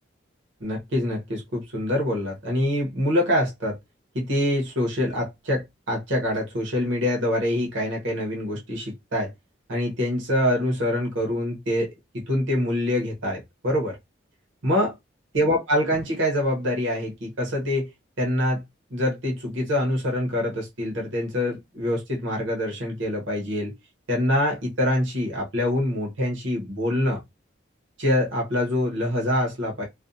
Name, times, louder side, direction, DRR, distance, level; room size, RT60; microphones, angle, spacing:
voice 1, 0.6-3.8 4.1-9.3 9.7-11.9 12.1-14.0 14.6-14.9 15.3-17.9 18.2-18.6 18.9-23.7 24.1-27.2 28.0-29.9, left 1 dB, 75° right, 0.8 m, -25 dB
2.5 x 2.1 x 2.5 m
head